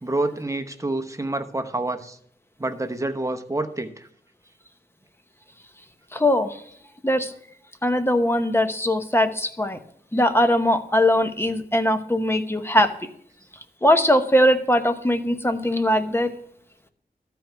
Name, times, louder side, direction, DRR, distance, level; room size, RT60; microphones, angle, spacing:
voice 1, 0.0-2.2 2.6-4.1, right 2 dB, 20° right, 7 dB, 0.9 m, -28 dB
voice 2, 6.1-6.6 7.0-7.3 7.8-9.8 10.1-12.9 13.8-16.3, left 1 dB, 15° left, 8 dB, 0.9 m, -20 dB
12.5 x 4.6 x 6.8 m, 0.65 s
wide cardioid pair, 80°, 17 cm